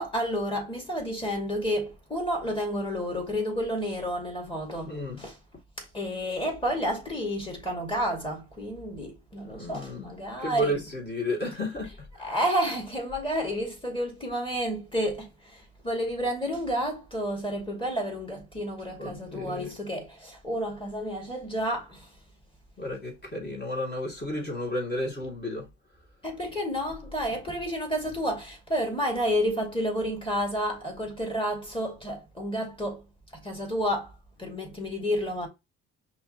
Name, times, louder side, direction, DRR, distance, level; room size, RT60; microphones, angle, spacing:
voice 1, 0.0-5.4 5.8-10.8 12.2-22.1 26.2-33.0 33.3-34.1 34.4-35.5, equal, 15° left, 2.4 m, -30 dB
voice 2, 4.9-5.2 9.5-10.1 10.4-12.3 19.0-19.7 22.8-25.7, left 1 dB, 35° left, 2.6 m, -32 dB
5.6 x 3.2 x 2.9 m
cardioid pair, 90°, 30 cm